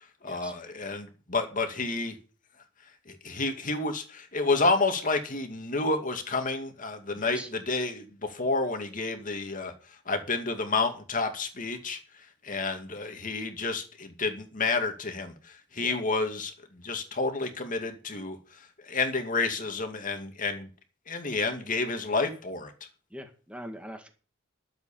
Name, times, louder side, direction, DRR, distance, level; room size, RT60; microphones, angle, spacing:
voice 1, 0.2-2.2 3.1-9.7 10.1-20.7 21.1-22.7, left 3 dB, 45° left, 6 dB, 2.2 m, -30 dB
voice 2, 7.1-7.5 15.8-16.0 23.1-24.1, equal, 5° right, 5 dB, 2.0 m, -42 dB
12.0 x 7.9 x 7.2 m, 0.37 s
head